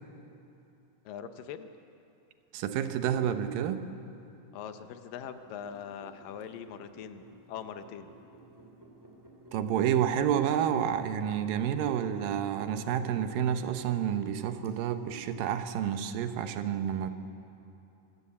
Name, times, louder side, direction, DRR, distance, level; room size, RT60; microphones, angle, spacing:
voice 1, 1.1-1.7 4.5-8.1, left 8 dB, 80° left, 9 dB, 2.6 m, -42 dB
voice 2, 2.5-3.8 9.5-17.1, right 9 dB, 85° right, 9 dB, 2.7 m, -29 dB
sound 1, 5.2-14.7, right 2 dB, 10° right, 2.0 m, -53 dB
25.5 x 14.0 x 8.5 m, 2.8 s
omnidirectional pair, 3.9 m